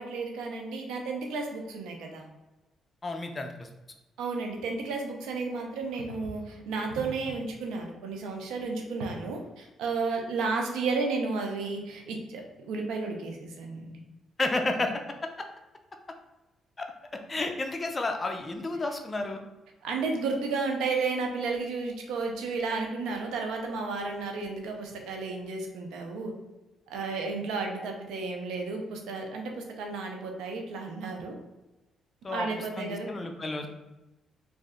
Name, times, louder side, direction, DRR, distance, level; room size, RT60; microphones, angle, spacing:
voice 1, 0.0-2.3 4.2-14.0 19.8-26.3 26.9-31.3 32.3-33.1, right 4 dB, 90° right, 2 dB, 0.6 m, -32 dB
voice 2, 3.0-3.7 14.4-14.9 15.2-15.5 16.8-19.4 32.2-32.5 32.8-33.7, left 2 dB, 25° left, 4 dB, 0.5 m, -31 dB
3.2 x 2.5 x 3.7 m, 1.0 s
cardioid pair, 90°, 0 cm